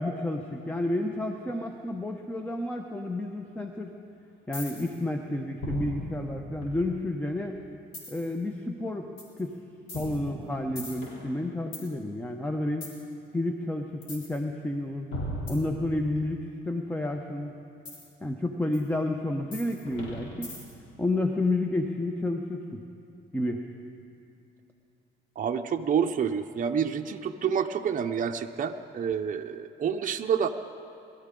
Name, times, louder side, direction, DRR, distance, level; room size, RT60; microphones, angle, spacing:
voice 1, 0.0-3.9 4.5-7.6 8.1-9.1 9.4-9.6 9.9-12.9 13.3-15.1 15.5-17.5 18.2-20.5 21.0-22.8 23.3-23.7, left 1 dB, 10° left, 4 dB, 0.8 m, -30 dB
sound 1, 4.5-5.0 5.6-7.2 7.9-8.4 9.2-9.4 9.9-11.9 12.8-13.0 14.0-14.4 15.1-16.3 17.9-18.1 18.7-18.8 19.5-20.9, equal, 80° left, 3.7 m, -38 dB
voice 2, 25.4-30.5, right 7 dB, 40° right, 5 dB, 0.6 m, -28 dB
22.0 x 13.0 x 3.8 m, 2.7 s
cardioid pair, 90°, 20 cm